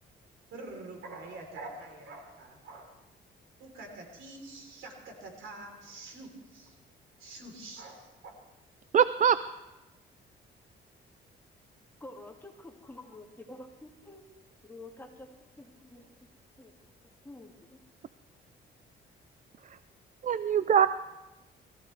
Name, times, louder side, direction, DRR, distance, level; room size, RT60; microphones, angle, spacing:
voice 1, 0.5-2.9 3.6-6.8 7.2-8.3, right 2 dB, 80° right, 2 dB, 3.6 m, -46 dB
voice 2, 8.9-9.4 19.7-19.8 20.2-20.9, right 8 dB, 40° right, 14 dB, 0.4 m, -23 dB
voice 3, 12.0-14.2 14.6-16.3 16.6-16.7 17.2-17.8, left 2 dB, 10° left, 1 dB, 2.1 m, -49 dB
21.5 x 14.5 x 3.3 m, 1.1 s
cardioid pair, 90°, 20 cm